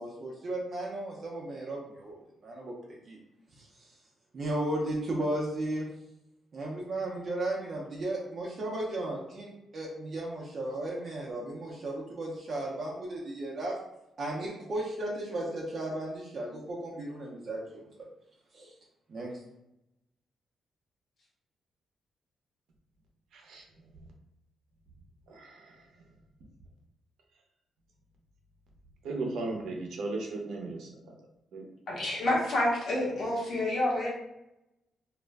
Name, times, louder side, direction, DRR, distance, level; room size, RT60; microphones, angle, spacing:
voice 1, 0.0-3.2 3.5-4.0 4.3-5.9 6.5-13.7 14.2-18.1 18.5-18.7 19.1-19.3, right 1 dB, 40° right, -4 dB, 0.5 m, -35 dB
voice 2, 23.3-23.6 25.3-25.8 29.0-31.0 31.5-31.6, right 2 dB, 85° right, 1 dB, 0.6 m, -36 dB
voice 3, 31.9-34.1, left 1 dB, 55° left, -4 dB, 0.9 m, -28 dB
2.4 x 2.0 x 3.3 m, 0.86 s
wide cardioid pair, 170°, 0 cm